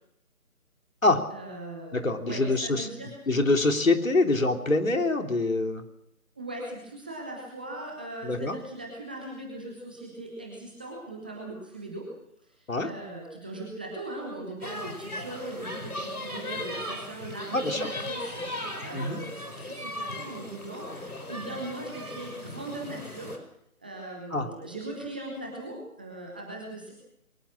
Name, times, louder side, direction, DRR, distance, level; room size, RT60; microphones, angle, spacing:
voice 1, 1.3-3.5 6.4-12.1 12.4-23.4 23.8-26.9, right 2 dB, 5° right, -2 dB, 0.9 m, -39 dB
voice 2, 1.9-2.9 3.3-5.8 8.2-8.6 12.7-12.9 17.5-17.9 18.9-19.2 24.3-24.5, left 2 dB, 65° left, 4 dB, 3.5 m, -25 dB
sound 1, 14.6-23.4, left 1 dB, 80° left, 4.9 m, -37 dB
23.0 x 20.5 x 6.3 m, 0.77 s
figure-of-eight pair, 150°, 44 cm